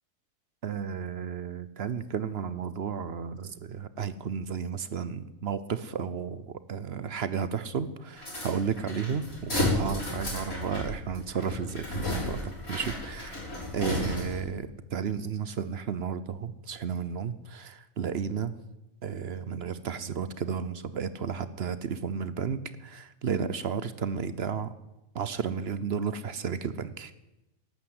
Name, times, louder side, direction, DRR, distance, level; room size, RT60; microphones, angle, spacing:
voice 1, 0.6-13.4 13.7-18.5 19.0-24.7 25.1-27.1, right 6 dB, 55° right, 14 dB, 0.9 m, -33 dB
sound 1, 8.2-14.5, left 2 dB, 90° left, 6.7 m, -33 dB
13.5 x 11.5 x 7.8 m, 0.95 s
omnidirectional pair, 1.4 m